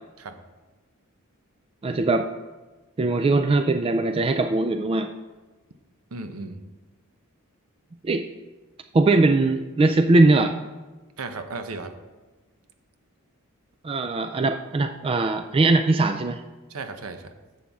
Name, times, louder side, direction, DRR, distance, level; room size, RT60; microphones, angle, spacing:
voice 1, 1.8-2.3 3.0-5.1 8.0-8.3 8.9-10.5 13.8-16.4, right 2 dB, 25° right, 8 dB, 0.3 m, -20 dB
voice 2, 6.1-6.6 11.2-11.9 16.7-17.3, right 3 dB, 75° right, 8 dB, 0.8 m, -35 dB
11.0 x 7.5 x 3.6 m, 1.2 s
head